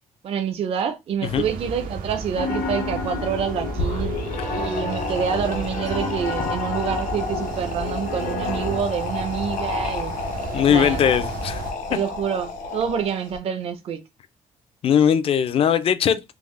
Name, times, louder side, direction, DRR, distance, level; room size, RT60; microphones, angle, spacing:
voice 1, 0.2-4.1 4.5-10.1 10.6-11.1 11.9-14.0, right 7 dB, 45° right, 0.4 m, -27 dB
sound 1, 1.2-11.7, right 4 dB, 85° right, 0.6 m, -33 dB
Piano, 2.4-8.8, left 4 dB, 90° left, 0.8 m, -30 dB
sound 2, 3.7-13.4, left 3 dB, 70° left, 1.1 m, -32 dB
voice 2, 10.5-11.6 11.9-12.0 14.8-16.2, left 8 dB, 45° left, 0.4 m, -19 dB
3.5 x 2.0 x 3.1 m
cardioid pair, 150°, 14 cm